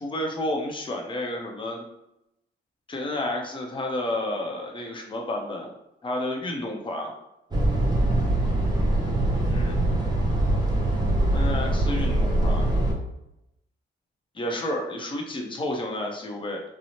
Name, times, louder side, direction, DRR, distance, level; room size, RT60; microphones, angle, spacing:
voice 1, 0.0-1.9 2.9-5.7 6.0-7.1 9.5-9.7 11.3-12.7 14.3-16.6, left 1 dB, 25° left, 1 dB, 0.6 m, -31 dB
sound 1, 7.5-12.9, right 1 dB, 20° right, 0.6 m, -23 dB
2.7 x 2.0 x 2.9 m, 0.85 s
cardioid pair, 90°, 20 cm